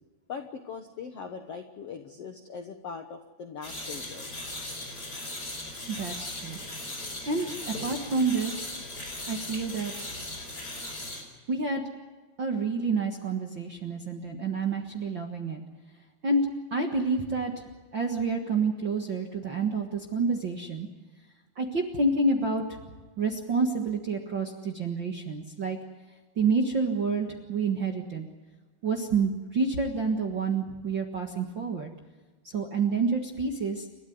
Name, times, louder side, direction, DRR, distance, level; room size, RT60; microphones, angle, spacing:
voice 1, 0.3-4.3, left 6 dB, 65° left, 5 dB, 1.5 m, -40 dB
sound 1, 3.6-11.2, left 1 dB, 25° left, 5.5 m, -38 dB
voice 2, 5.9-6.6 7.2-8.7 9.3-9.9 11.5-11.8 12.4-15.6 16.2-16.4 16.7-17.6 17.9-20.9 21.5-22.8 23.2-25.8 26.4-28.2 28.8-31.9 32.5-33.9, right 4 dB, 50° right, 2 dB, 1.4 m, -28 dB
30.0 x 13.0 x 9.3 m, 1.3 s
omnidirectional pair, 4.5 m